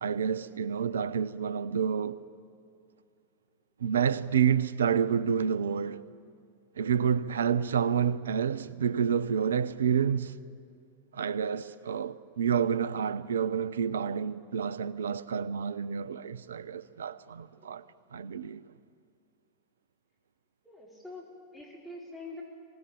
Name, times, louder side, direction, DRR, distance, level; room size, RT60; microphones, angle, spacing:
voice 1, 0.0-2.2 3.8-6.0 6.8-10.3 11.1-17.8 18.1-18.6, right 7 dB, 65° right, 0.6 m, -29 dB
voice 2, 20.6-21.2 21.5-22.4, left 2 dB, ahead, 4.5 m, -45 dB
25.5 x 18.5 x 8.9 m
figure-of-eight pair, 90°, 0 cm